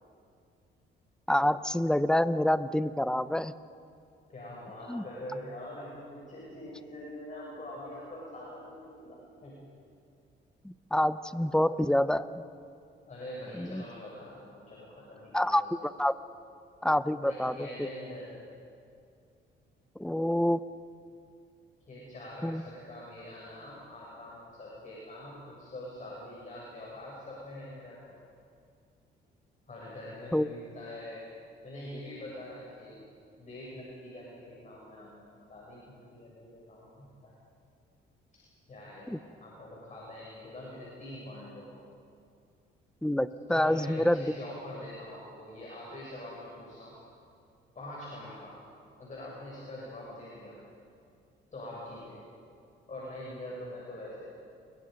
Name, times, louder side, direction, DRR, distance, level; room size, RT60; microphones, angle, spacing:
voice 1, 1.3-3.5 4.9-5.0 10.6-12.4 13.6-13.8 15.3-15.6 16.0-16.1 16.8-17.5 20.0-20.6 22.4-22.6 30.3-30.5 39.1-39.2 43.0-44.2, left 1 dB, 5° left, 13 dB, 0.8 m, -27 dB
voice 2, 4.3-9.6 13.1-15.6 17.2-18.4 21.9-28.2 29.7-31.2 31.6-33.0 33.4-37.3 38.3-38.4 38.7-41.7 43.5-46.9 47.7-48.5 49.0-50.6 51.5-52.2 52.9-54.2, left 1 dB, 40° left, -5 dB, 7.4 m, -44 dB
29.5 x 23.0 x 5.3 m, 2.4 s
cardioid pair, 90°, 20 cm